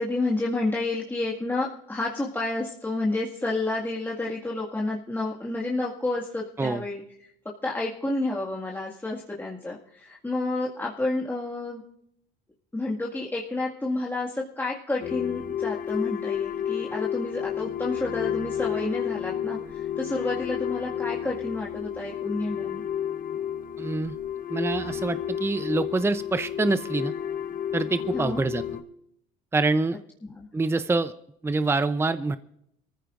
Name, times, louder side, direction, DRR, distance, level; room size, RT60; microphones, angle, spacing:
voice 1, 0.0-11.8 12.7-22.8 28.1-28.4 30.2-30.5, left 2 dB, 10° left, -4 dB, 2.0 m, -30 dB
sound 1, 15.0-28.8, left 9 dB, 45° left, 1.2 m, -31 dB
voice 2, 23.8-24.1 24.5-27.1 27.7-28.6 29.5-30.0 30.5-31.1 31.4-32.4, right 3 dB, 15° right, 12 dB, 0.7 m, -25 dB
22.5 x 14.5 x 2.6 m, 0.73 s
supercardioid pair, 80°, 19 cm